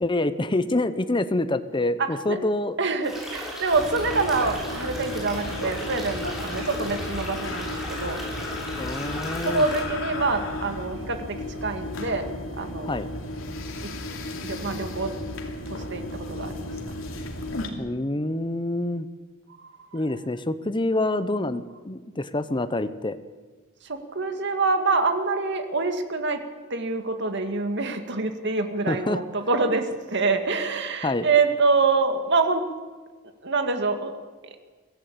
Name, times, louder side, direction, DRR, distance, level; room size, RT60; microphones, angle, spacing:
voice 1, 0.0-2.8 8.8-9.6 12.8-13.1 17.8-19.1 19.9-23.2 28.9-29.2 31.0-31.3, left 2 dB, 25° left, 12 dB, 0.8 m, -26 dB
voice 2, 2.0-2.4 2.8-8.2 9.4-12.3 12.6-13.0 13.8-13.9 14.4-15.1 15.7-16.7 19.9-20.0 23.8-26.4 26.7-32.7 33.4-34.1, right 3 dB, 60° right, 7 dB, 2.1 m, -26 dB
sound 1, 3.0-9.8, equal, ahead, 7.1 m, -36 dB
sound 2, 3.7-17.7, left 1 dB, 80° left, 2.8 m, -34 dB
23.5 x 15.5 x 8.5 m, 1.4 s
head